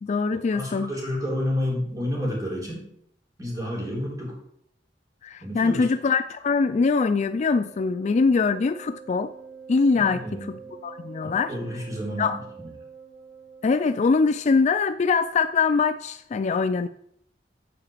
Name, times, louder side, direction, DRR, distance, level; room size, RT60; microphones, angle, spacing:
voice 1, 0.0-0.9 5.2-9.3 9.7-10.6 10.8-11.5 12.2-12.4 13.6-16.9, left 4 dB, 40° left, 11 dB, 0.3 m, -23 dB
voice 2, 0.5-2.9 3.4-4.4 5.4-5.9 9.9-10.4 11.2-12.3 12.6-12.7, left 1 dB, 20° right, -3 dB, 3.3 m, -30 dB
Wind instrument woodwind instrument, 7.1-14.2, right 5 dB, 40° right, 2.9 m, -46 dB
8.5 x 4.9 x 6.8 m, 0.69 s
head